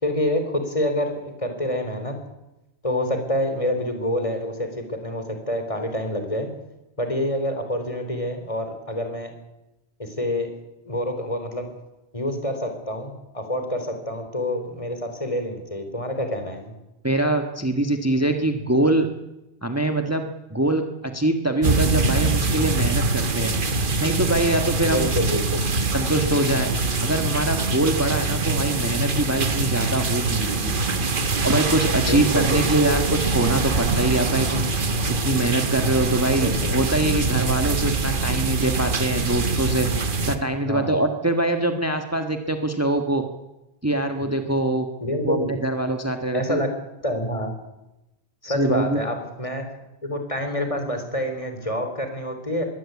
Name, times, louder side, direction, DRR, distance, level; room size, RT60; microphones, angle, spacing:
voice 1, 0.0-2.1 2.8-6.5 7.0-9.3 10.0-10.5 10.8-11.7 12.1-16.7 24.8-25.6 32.1-33.2 36.4-36.7 40.6-41.0 44.2-44.3 45.0-45.5 46.3-46.7 47.0-47.5 48.4-49.6 50.0-52.6, left 1 dB, 30° left, 6 dB, 3.9 m, -27 dB
voice 2, 17.0-19.1 19.6-23.5 24.0-25.1 25.9-26.7 27.0-30.7 31.4-34.7 35.1-39.9 40.3-43.2 43.8-44.9 45.2-46.6 48.5-49.0, right 2 dB, 15° right, 7 dB, 1.5 m, -23 dB
sound 1, 21.6-40.4, right 3 dB, 50° right, 1.6 m, -24 dB
22.5 x 17.5 x 8.3 m, 0.95 s
omnidirectional pair, 1.1 m